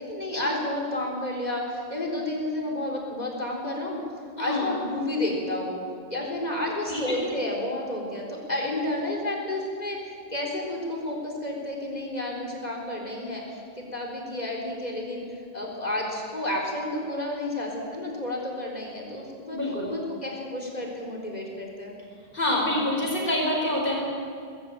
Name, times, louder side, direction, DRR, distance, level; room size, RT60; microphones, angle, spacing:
voice 1, 0.0-4.0 4.4-5.8 6.1-15.2 15.5-19.6 19.9-21.9, left 1 dB, 40° left, -1 dB, 4.4 m, -31 dB
voice 2, 4.4-4.8 6.9-7.3 19.5-19.9 22.3-24.0, left 1 dB, 60° left, -2 dB, 5.1 m, -26 dB
19.5 x 16.0 x 9.0 m, 2.3 s
omnidirectional pair, 1.0 m